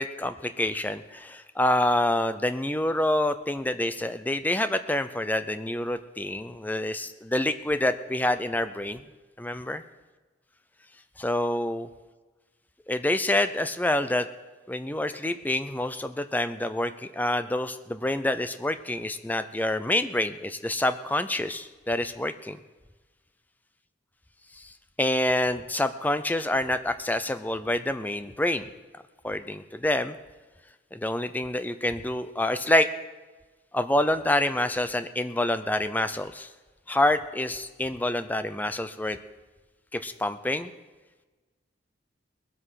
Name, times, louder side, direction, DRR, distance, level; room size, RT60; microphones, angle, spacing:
voice 1, 0.0-9.0 9.4-9.8 11.2-11.9 12.9-14.3 14.7-22.6 24.5-24.7 25.0-28.6 29.2-30.2 30.9-32.9 33.7-36.5 36.9-39.2 39.9-40.7, left 1 dB, 10° left, 10 dB, 0.5 m, -27 dB
20.5 x 8.0 x 5.8 m, 1.3 s
head